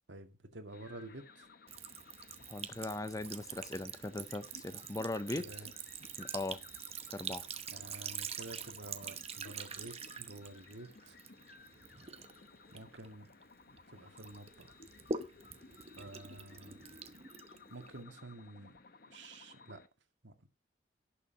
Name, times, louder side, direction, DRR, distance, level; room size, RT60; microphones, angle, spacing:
voice 1, 0.1-1.5 5.4-5.7 7.7-11.2 12.7-13.3 13.7-14.8 16.0-16.8 17.7-18.8 19.1-19.8 20.2-20.5, right 2 dB, 75° right, 2.0 m, -50 dB
sound 1, 0.7-19.9, left 4 dB, 55° left, 1.1 m, -58 dB
Sink (filling or washing) / Trickle dribble, 1.7-13.8 14.2-18.0, right 6 dB, 35° right, 0.9 m, -45 dB
voice 2, 2.5-5.5 6.2-6.6 7.1-7.4, left 2 dB, 20° left, 0.5 m, -39 dB
17.0 x 6.9 x 2.8 m
head